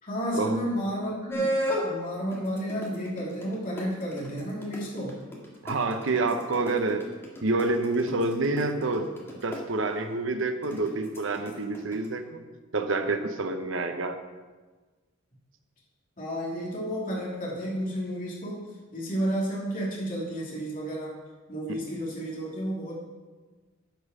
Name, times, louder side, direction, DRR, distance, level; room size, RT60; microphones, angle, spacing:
voice 1, 0.0-5.2 16.2-18.6 18.9-21.2 21.5-22.9, equal, 45° left, -5 dB, 2.9 m, -32 dB
sound 1, 1.3-1.9 2.3-9.6 10.6-12.1, equal, 10° left, 1.8 m, -32 dB
voice 2, 5.6-7.1 7.4-9.1 9.4-12.4 12.7-14.2, right 2 dB, 70° right, 7 dB, 0.9 m, -28 dB
10.5 x 5.5 x 6.1 m, 1.3 s
head